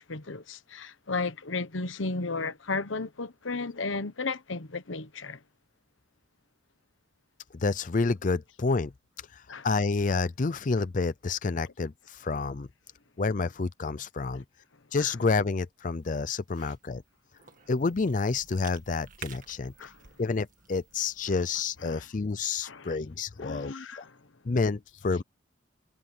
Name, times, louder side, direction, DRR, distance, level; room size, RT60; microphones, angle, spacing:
voice 1, 0.0-5.4 9.5-9.7 15.0-15.1 19.8-19.9 21.9-22.0 22.6-23.0 23.4-24.2, left 3 dB, 90° left, 1.2 m, -34 dB
voice 2, 7.5-8.9 9.3-12.7 13.2-14.4 14.9-17.0 17.7-19.9 20.2-24.1 24.5-25.2, left 4 dB, 45° left, 0.5 m, -29 dB
Cough / Chewing mastication, 16.0-21.9, right 7 dB, 45° right, 2.2 m, -52 dB
head